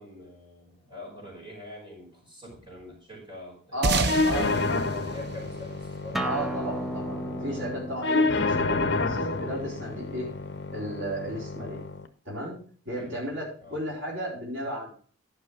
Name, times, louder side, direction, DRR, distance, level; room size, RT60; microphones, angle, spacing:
voice 1, 0.0-7.1 8.2-8.3 12.9-13.3 13.6-13.8, left 2 dB, 25° right, -2 dB, 5.0 m, -44 dB
voice 2, 3.7-4.5 6.2-7.2 7.4-10.3 10.7-11.8 12.2-12.6 12.9-13.4 13.7-14.9, right 1 dB, 85° right, -3 dB, 4.3 m, -33 dB
sound 1, 3.8-6.6, right 3 dB, 50° right, 0.7 m, -30 dB
sound 2, 4.1-12.1, left 3 dB, 55° left, 0.8 m, -29 dB
Acoustic guitar, 6.1-11.3, right 1 dB, ahead, 0.5 m, -36 dB
11.5 x 5.8 x 5.0 m, 0.44 s
head